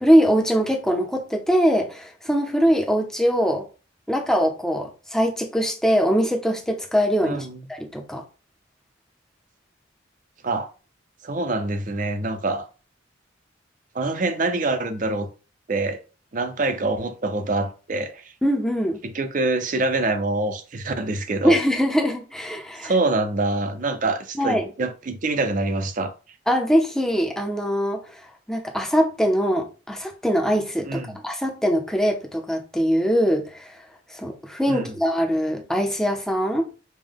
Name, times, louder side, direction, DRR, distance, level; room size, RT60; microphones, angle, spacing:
voice 1, 0.0-3.6 4.1-8.2 18.4-19.0 21.4-22.9 24.4-24.7 26.5-28.2 28.5-33.8 34.1-36.7, equal, 5° left, 0.6 m, -22 dB
voice 2, 7.2-7.7 10.4-10.7 11.2-12.7 13.9-15.3 15.7-16.0 16.3-18.3 19.0-21.6 22.8-26.1 30.9-31.2 34.7-34.9, right 2 dB, 40° right, 0.5 m, -25 dB
5.2 x 2.2 x 3.5 m
head